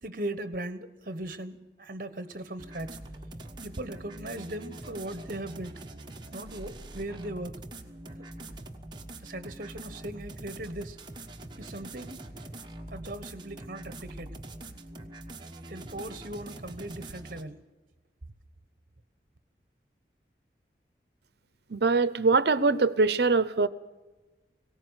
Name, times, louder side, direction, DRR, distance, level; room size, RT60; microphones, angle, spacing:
voice 1, 0.0-3.0 3.6-5.9 6.3-7.6 9.2-11.0 11.6-12.2 12.9-14.4 15.7-17.6, right 1 dB, 50° right, 12 dB, 1.2 m, -38 dB
sound 1, 2.6-17.4, right 1 dB, 25° right, 1.2 m, -44 dB
voice 2, 21.7-23.7, right 4 dB, 70° right, 16 dB, 0.7 m, -23 dB
19.0 x 17.5 x 8.1 m, 1.1 s
head